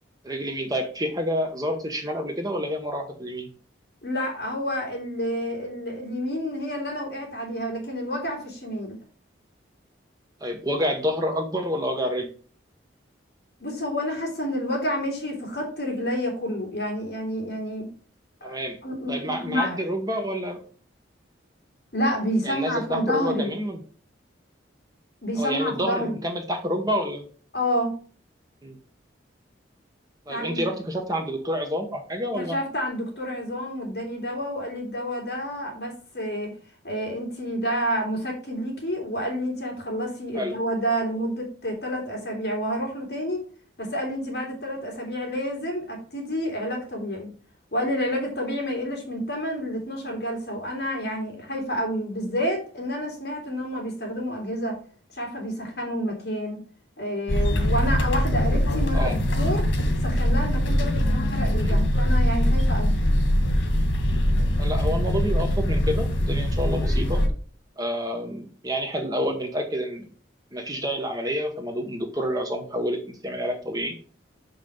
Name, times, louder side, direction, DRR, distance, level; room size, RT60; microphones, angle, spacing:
voice 1, 0.2-3.5 10.4-12.3 18.4-18.8 19.1-20.6 22.4-23.8 25.4-27.2 28.6-28.8 30.3-32.6 40.3-40.5 58.9-59.2 61.6-61.7 64.6-67.2 67.8-70.1 70.5-74.0, equal, 20° right, 4 dB, 1.0 m, -28 dB
voice 2, 4.0-9.0 13.6-17.9 18.4-18.6 18.8-19.8 21.9-23.5 25.2-26.2 27.5-27.9 30.3-30.6 32.3-36.5 36.8-43.4 43.8-47.3 47.7-54.8 55.1-56.6 57.0-59.7 60.0-63.0, equal, 55° left, 1 dB, 3.2 m, -29 dB
sound 1, 57.3-67.3, equal, 90° left, 1.7 m, -22 dB
6.3 x 5.4 x 5.3 m, 0.41 s
head